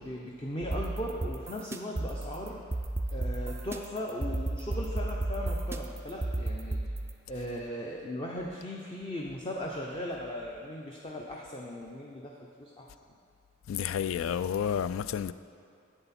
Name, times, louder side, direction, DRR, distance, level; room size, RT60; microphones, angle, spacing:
voice 1, 0.0-2.6 3.1-6.8 7.3-12.9, left 1 dB, 25° left, 0.6 m, -38 dB
sound 1, 0.6-7.1, right 2 dB, 10° right, 0.3 m, -33 dB
voice 2, 13.7-15.3, left 8 dB, 80° left, 0.3 m, -30 dB
11.0 x 8.0 x 4.3 m
head